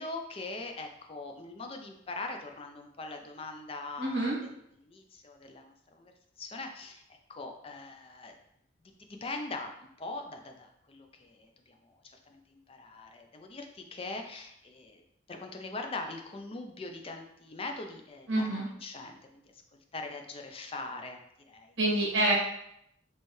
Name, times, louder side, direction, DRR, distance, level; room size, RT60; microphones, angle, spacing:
voice 1, 0.0-4.3 4.8-6.1 6.4-8.3 8.8-15.0 15.3-19.6 19.9-21.2 21.5-21.8, left 3 dB, 30° left, 4 dB, 0.4 m, -42 dB
voice 2, 4.0-4.4 18.3-18.7 21.8-22.3, right 2 dB, 65° right, -5 dB, 1.7 m, -27 dB
4.4 x 3.2 x 3.1 m, 0.76 s
head